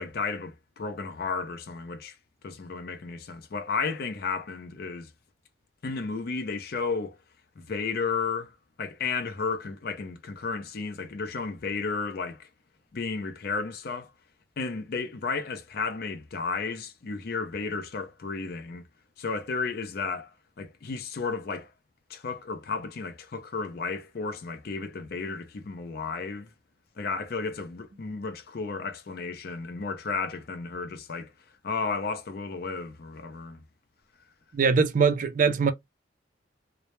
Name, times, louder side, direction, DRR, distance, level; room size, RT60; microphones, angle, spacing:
voice 1, 0.0-2.2 2.4-5.1 5.8-7.2 7.6-12.5 12.9-14.1 14.6-18.8 19.2-20.3 20.6-21.7 22.1-26.5 27.0-31.3 31.6-33.6, left 4 dB, 55° left, 0.5 m, -33 dB
voice 2, 34.5-35.7, right 5 dB, 45° right, 0.3 m, -22 dB
2.2 x 2.0 x 2.9 m
head